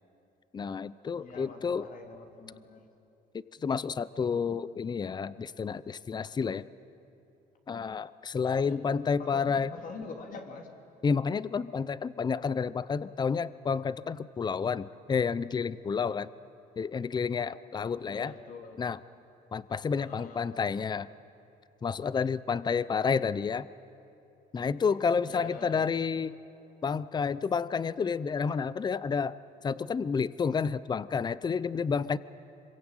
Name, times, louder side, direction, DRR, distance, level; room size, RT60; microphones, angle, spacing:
voice 1, 0.5-1.9 3.6-6.6 7.7-9.7 11.0-16.3 16.8-18.3 18.8-19.0 19.5-21.1 21.8-23.7 24.5-26.4 26.8-29.4 29.6-32.2, left 5 dB, 25° left, 18 dB, 0.6 m, -30 dB
voice 2, 1.1-2.9 8.6-10.7 18.0-18.8 19.9-20.4 25.2-25.9, left 4 dB, 55° left, 3 dB, 3.1 m, -45 dB
26.0 x 22.5 x 9.0 m, 2.8 s
cardioid pair, 110°, 17 cm